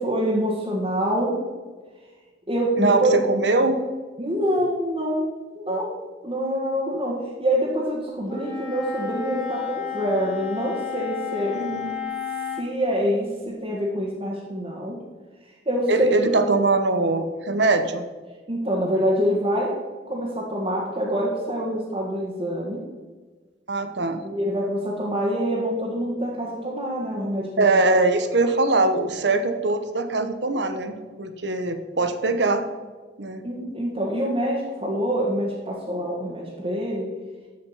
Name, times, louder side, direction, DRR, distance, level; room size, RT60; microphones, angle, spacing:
voice 1, 0.0-1.4 2.5-3.3 4.2-6.0 6.2-11.6 12.5-15.0 15.6-16.3 18.5-19.8 20.1-22.9 24.2-27.7 33.4-37.1, equal, 30° right, -6 dB, 1.6 m, -25 dB
voice 2, 2.8-3.8 11.5-11.9 15.9-18.0 23.7-24.2 27.6-32.7 33.2-33.4, right 2 dB, 70° right, 9 dB, 1.0 m, -22 dB
Wind instrument woodwind instrument, 8.2-12.7, left 7 dB, 30° left, 2.3 m, -32 dB
14.0 x 5.1 x 5.6 m, 1.4 s
head